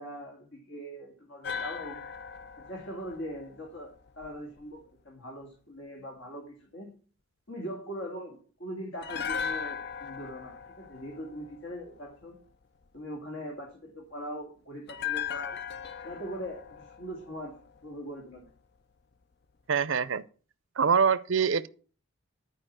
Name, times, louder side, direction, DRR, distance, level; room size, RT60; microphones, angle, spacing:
voice 1, 0.0-2.1 2.6-3.9 4.2-6.9 7.5-12.4 12.9-15.6 16.0-17.5 17.8-18.5, equal, 70° left, 2.3 m, -41 dB
sound 1, 1.4-4.6 9.0-12.2 14.9-18.1 18.4-18.5, left 7 dB, 55° left, 0.6 m, -38 dB
voice 2, 19.7-20.2 20.8-21.7, right 6 dB, 65° right, 0.6 m, -24 dB
11.0 x 4.8 x 6.0 m
head